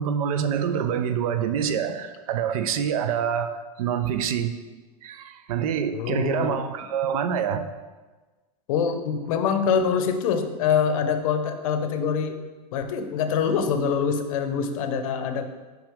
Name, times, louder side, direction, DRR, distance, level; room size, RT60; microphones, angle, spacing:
voice 1, 0.0-4.5 5.0-7.7, right 8 dB, 60° right, 9 dB, 0.5 m, -26 dB
voice 2, 5.9-6.7 8.7-12.3 12.7-15.4, left 6 dB, 55° left, 7 dB, 0.7 m, -24 dB
6.0 x 5.0 x 3.6 m, 1.3 s
supercardioid pair, 140°, 21 cm